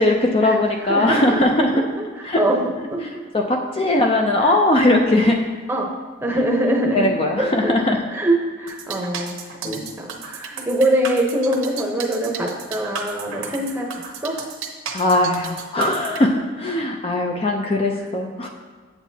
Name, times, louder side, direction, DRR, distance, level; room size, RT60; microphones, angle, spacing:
voice 1, 0.0-1.8 2.2-2.4 3.3-5.4 6.3-6.4 6.7-8.0 9.6-9.8 13.3-13.6 14.9-18.5, left 1 dB, 25° left, 2 dB, 0.4 m, -20 dB
voice 2, 0.9-1.4 1.7-1.8 2.4-2.6 2.9-3.2 4.4-4.5 5.7-5.9 6.2-7.1 7.4-7.7 8.1-9.4 9.6-14.4, right 1 dB, 10° right, 0 dB, 0.8 m, -23 dB
sound 1, 8.7-16.2, right 6 dB, 80° right, 0.9 m, -33 dB
8.1 x 8.0 x 2.8 m, 1.4 s
head